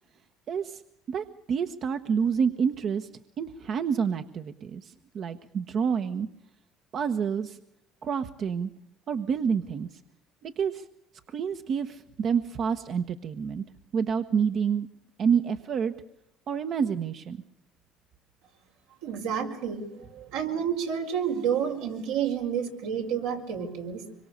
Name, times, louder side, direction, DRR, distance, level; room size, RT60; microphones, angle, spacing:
voice 1, 0.5-0.8 1.1-3.1 3.4-6.3 6.9-7.6 8.0-8.7 9.1-10.0 10.4-10.9 11.3-13.6 13.9-14.9 15.2-15.9 16.5-17.4, right 6 dB, 50° right, 8 dB, 1.2 m, -28 dB
voice 2, 19.0-24.2, right 8 dB, 85° right, 1 dB, 5.1 m, -30 dB
25.5 x 23.5 x 6.8 m, 0.82 s
supercardioid pair, 80°, 0 cm